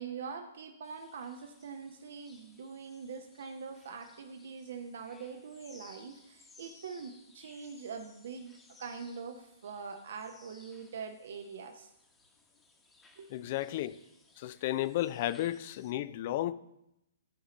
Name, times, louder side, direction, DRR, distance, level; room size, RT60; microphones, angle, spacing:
voice 1, 0.0-8.5 8.8-11.9 13.2-13.3, right 5 dB, 60° right, 0.7 m, -43 dB
sound 1, 0.8-15.9, left 3 dB, 15° left, 1.1 m, -61 dB
voice 2, 13.3-14.0 14.4-16.5, left 14 dB, 45° left, 0.4 m, -33 dB
12.0 x 4.9 x 4.1 m
figure-of-eight pair, 115°, 0 cm